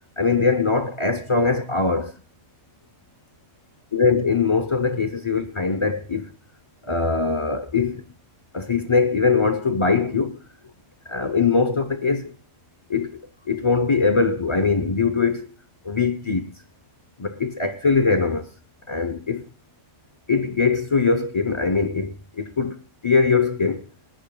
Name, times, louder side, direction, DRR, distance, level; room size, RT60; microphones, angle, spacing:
voice 1, 0.2-2.1 3.9-6.3 6.9-8.0 8.5-10.4 11.1-12.3 12.9-13.2 13.5-15.5 15.8-16.5 17.2-18.5 18.9-19.5 20.3-22.8 23.0-23.8, left 4 dB, 35° left, 0.4 m, -21 dB
26.0 x 9.7 x 2.3 m
omnidirectional pair, 1.5 m